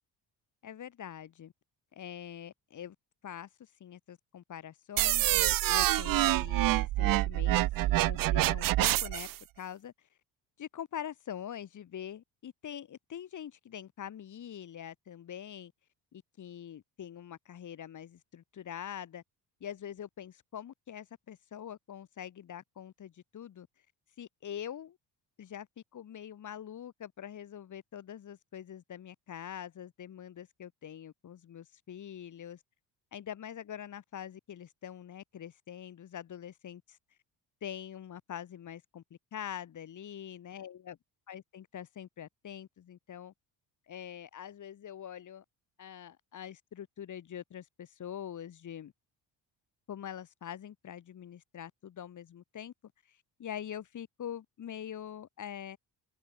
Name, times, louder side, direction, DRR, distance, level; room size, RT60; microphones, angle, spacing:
voice 1, 0.6-1.5 1.9-3.0 3.2-7.6 7.9-9.3 9.6-9.9 10.6-15.7 16.1-19.2 19.6-23.7 24.2-25.0 25.4-25.7 25.9-32.6 33.1-37.0 37.6-41.0 41.3-43.3 43.9-45.4 45.8-48.9 49.9-52.7 53.1-55.8, left 9 dB, 45° left, 2.0 m, -44 dB
sound 1, 5.0-9.4, right 16 dB, 55° right, 0.5 m, -27 dB
open air
cardioid pair, 115°, 40 cm